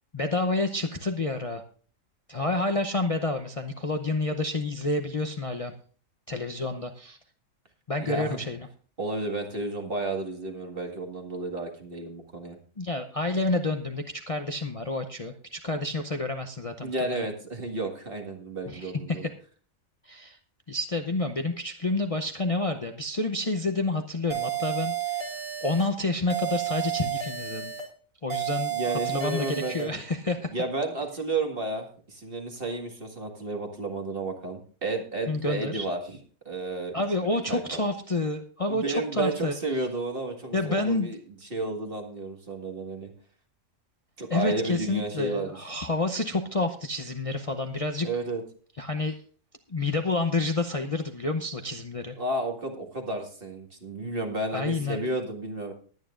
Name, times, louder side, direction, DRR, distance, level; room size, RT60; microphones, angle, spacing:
voice 1, 0.1-1.6 2.3-5.7 6.3-7.2 7.9-8.7 12.8-17.2 18.7-19.3 20.1-20.4 20.7-25.3 25.6-27.7 28.2-30.5 35.3-35.9 36.9-39.5 40.5-41.1 44.3-48.1 48.8-49.2 49.7-52.2 54.5-55.1, left 2 dB, 30° left, 4 dB, 0.7 m, -29 dB
voice 2, 8.0-8.4 9.0-12.6 16.8-19.3 28.7-30.0 30.5-36.2 36.5-36.9 37.5-37.8 38.7-41.2 41.5-43.1 44.2-45.7 48.0-48.4 52.2-55.7, right 2 dB, 45° right, 3 dB, 2.2 m, -32 dB
sound 1, 24.3-25.9 26.3-27.9 28.3-29.9, right 10 dB, 75° right, 3.0 m, -31 dB
20.5 x 9.4 x 2.5 m, 0.42 s
omnidirectional pair, 1.4 m